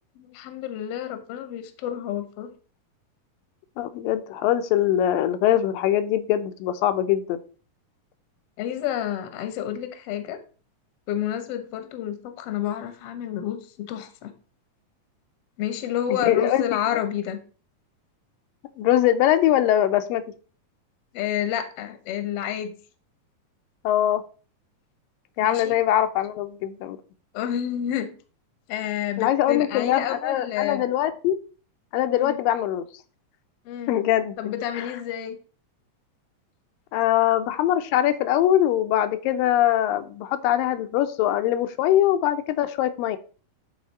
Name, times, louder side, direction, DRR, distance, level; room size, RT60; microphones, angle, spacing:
voice 1, 0.2-2.5 8.6-10.4 11.1-14.3 15.6-17.4 21.1-22.8 25.4-25.8 27.3-28.1 28.7-30.9 32.1-32.4 33.6-34.0 34.4-35.4, left 10 dB, 65° left, 9 dB, 1.5 m, -29 dB
voice 2, 3.8-7.4 16.2-16.6 18.8-20.2 23.8-24.2 25.4-27.0 29.2-31.4 31.9-32.8 33.9-34.4 34.8-34.9 36.9-43.2, left 12 dB, 85° left, 9 dB, 2.4 m, -22 dB
10.5 x 4.3 x 4.1 m, 0.39 s
omnidirectional pair, 3.9 m